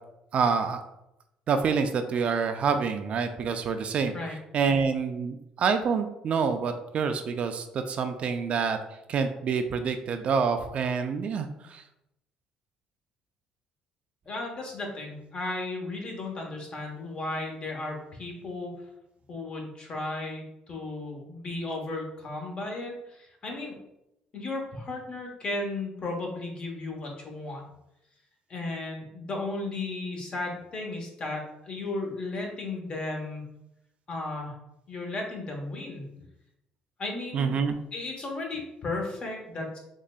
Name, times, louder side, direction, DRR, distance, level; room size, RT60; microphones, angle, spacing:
voice 1, 0.3-0.8 1.5-4.1 4.5-8.8 9.1-11.8 37.3-37.7, right 5 dB, 50° right, 7 dB, 0.3 m, -27 dB
voice 2, 14.3-18.7 19.3-23.7 24.3-27.6 28.5-33.5 34.1-34.5 34.9-36.0 37.0-37.6 37.9-39.8, left 2 dB, 40° left, 1 dB, 0.9 m, -35 dB
3.7 x 3.2 x 2.2 m, 0.85 s
cardioid pair, 95°, 3 cm